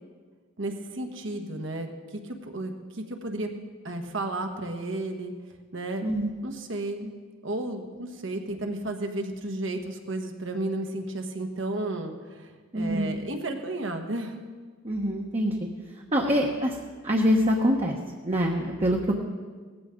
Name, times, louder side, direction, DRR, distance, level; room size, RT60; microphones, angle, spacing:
voice 1, 0.6-3.5 3.8-5.3 5.7-6.1 6.4-7.1 7.4-14.3, right 2 dB, 65° right, 5 dB, 1.5 m, -33 dB
voice 2, 12.7-13.1 14.8-15.5 16.1-16.8 17.0-18.0 18.2-19.2, equal, 30° right, -1 dB, 1.1 m, -24 dB
17.5 x 14.5 x 3.8 m, 1.5 s
head